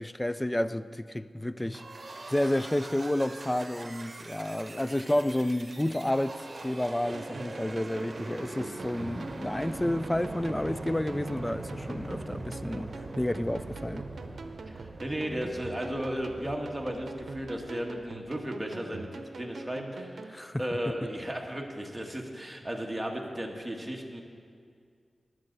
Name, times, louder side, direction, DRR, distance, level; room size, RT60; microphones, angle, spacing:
voice 1, 0.0-1.8 2.3-12.9 13.2-14.0 20.3-20.6, left 1 dB, 15° left, 0.4 m, -30 dB
sound 1, 1.7-18.3, right 2 dB, 50° right, 1.1 m, -42 dB
sound 2, 7.1-20.4, right 3 dB, 75° right, 0.7 m, -44 dB
voice 2, 14.7-24.2, equal, 10° right, 1.7 m, -35 dB
20.0 x 7.7 x 4.0 m
cardioid pair, 45°, 0 cm